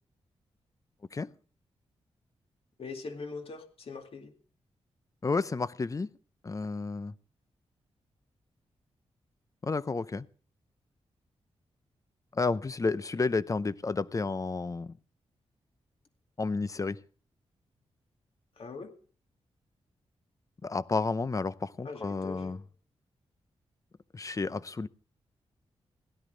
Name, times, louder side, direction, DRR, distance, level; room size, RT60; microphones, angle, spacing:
voice 1, 2.8-4.3 18.6-18.9 21.8-22.6, left 4 dB, 60° left, 2.3 m, -42 dB
voice 2, 5.2-6.1 6.4-7.1 9.6-10.3 12.3-14.9 16.4-17.0 20.6-22.6 24.1-24.9, left 4 dB, 30° left, 0.6 m, -31 dB
16.5 x 11.0 x 3.8 m
cardioid pair, 75°, 11 cm